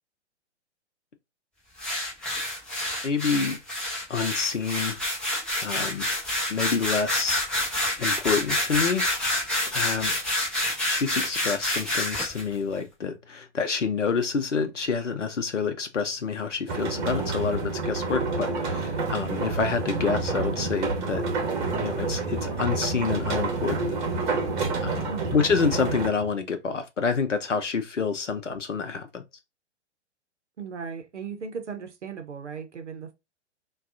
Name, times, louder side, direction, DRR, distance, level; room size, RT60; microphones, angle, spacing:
sound 1, 1.8-12.4, left 1 dB, ahead, 0.6 m, -28 dB
voice 1, 3.0-3.6 4.1-5.0 5.6-6.1 6.5-7.4 8.0-10.2 10.9-21.3 21.7-24.0 24.2-24.4 24.7-29.2, left 5 dB, 90° left, 0.6 m, -28 dB
sound 2, 16.7-26.1, right 3 dB, 45° right, 1.1 m, -28 dB
voice 2, 30.6-33.1, right 5 dB, 75° right, 0.7 m, -37 dB
3.4 x 2.3 x 2.5 m
figure-of-eight pair, 115°, 35 cm